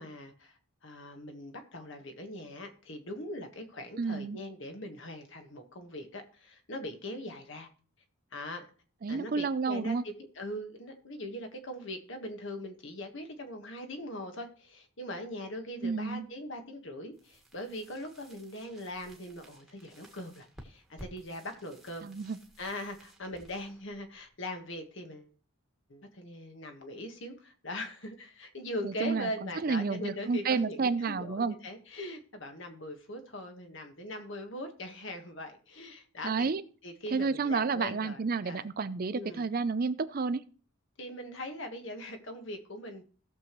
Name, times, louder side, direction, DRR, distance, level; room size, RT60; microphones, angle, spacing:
voice 1, 0.0-7.7 8.3-8.7 9.1-22.1 22.6-25.3 25.9-36.5 36.8-38.7 39.1-39.4 41.0-43.0, left 1 dB, 60° left, 5 dB, 1.5 m, -41 dB
voice 2, 4.0-4.4 9.0-10.0 15.8-16.3 22.0-22.4 28.8-31.5 36.2-36.6 37.1-40.4, right 4 dB, 40° right, 14 dB, 0.4 m, -30 dB
sound 1, 17.1-24.9, right 1 dB, ahead, 1.5 m, -55 dB
17.0 x 6.9 x 3.1 m, 0.40 s
head